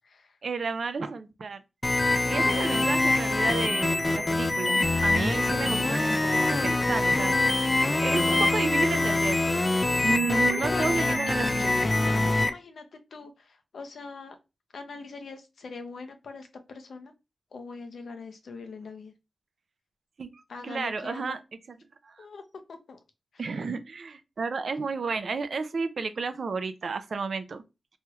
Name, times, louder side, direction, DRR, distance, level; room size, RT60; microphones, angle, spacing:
voice 1, 0.4-1.6 2.3-7.4 8.0-9.6 10.0-11.7 12.0-12.3 20.2-21.4 22.0-22.3 23.4-27.6, right 4 dB, 60° right, 0.4 m, -32 dB
sound 1, 1.8-12.5, left 2 dB, 25° left, 0.3 m, -24 dB
voice 2, 10.3-12.8 13.1-14.4 14.7-17.1 17.5-19.1 20.5-21.4 22.2-22.4 22.7-23.0 23.3-23.4, left 4 dB, 75° left, 0.5 m, -41 dB
3.0 x 2.9 x 2.3 m
wide cardioid pair, 110°, 0 cm